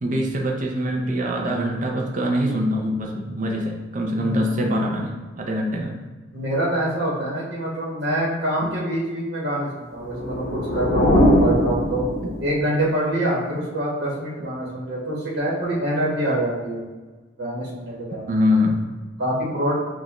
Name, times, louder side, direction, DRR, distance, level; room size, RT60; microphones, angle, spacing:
voice 1, 0.0-6.0 8.6-8.7 12.2-12.3 18.3-18.8, left 1 dB, 40° right, 0 dB, 0.6 m, -24 dB
voice 2, 4.2-4.6 6.3-12.1 12.4-16.8 17.4-18.2 19.2-19.8, right 1 dB, 60° right, -7 dB, 1.2 m, -25 dB
sound 1, 10.0-12.7, equal, 60° left, 0.9 m, -20 dB
6.4 x 2.5 x 3.0 m, 1.3 s
head